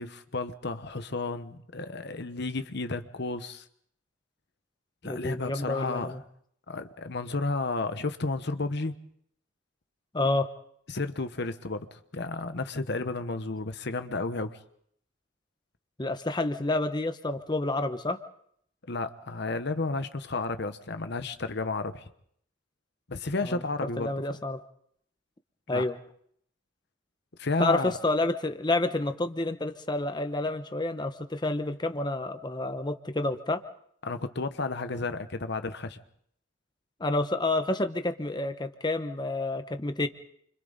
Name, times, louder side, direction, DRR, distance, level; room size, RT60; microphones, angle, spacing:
voice 1, 0.0-3.6 5.0-6.2 6.7-8.9 10.9-14.6 18.9-22.1 23.1-24.1 25.7-25.8 27.4-27.9 34.0-36.0, left 3 dB, 60° left, 10 dB, 1.1 m, -32 dB
voice 2, 5.0-6.2 10.1-10.5 16.0-18.2 23.4-23.6 24.0-24.6 25.7-26.0 27.6-33.6 37.0-40.1, left 2 dB, 20° left, 8 dB, 1.0 m, -29 dB
29.5 x 25.5 x 4.1 m, 0.67 s
head